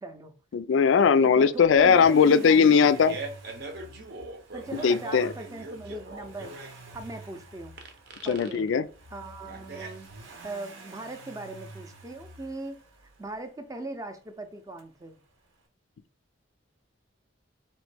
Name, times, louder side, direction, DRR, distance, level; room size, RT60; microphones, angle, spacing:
voice 1, 0.0-0.3 1.2-2.9 4.5-6.6 6.9-7.8 8.2-8.7 9.1-10.1 10.4-12.8 13.2-15.2, right 2 dB, 15° right, 0.5 m, -39 dB
voice 2, 0.5-3.2 4.8-5.3 8.3-8.8, left 6 dB, 70° left, 0.3 m, -19 dB
Accelerating revving vroom, 1.6-13.5 14.8-14.9, right 2 dB, 85° right, 1.0 m, -49 dB
Fart, 2.5-10.5, right 3 dB, 50° right, 0.7 m, -42 dB
4.3 x 3.1 x 3.3 m
head